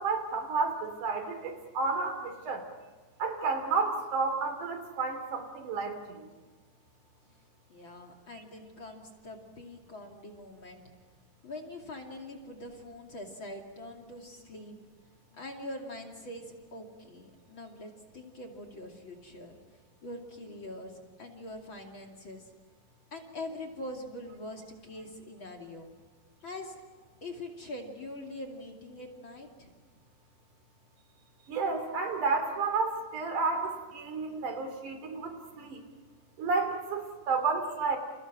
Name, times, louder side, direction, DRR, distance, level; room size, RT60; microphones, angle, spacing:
voice 1, 0.0-2.6 3.2-6.3 31.5-35.8 36.4-38.0, right 4 dB, 65° right, 6 dB, 4.4 m, -31 dB
voice 2, 7.7-10.8 11.4-14.8 15.4-19.6 20.0-22.5 23.1-25.9 26.4-26.8 27.2-29.7, left 1 dB, 40° left, 2 dB, 2.9 m, -43 dB
30.0 x 28.5 x 6.2 m, 1.3 s
omnidirectional pair, 3.9 m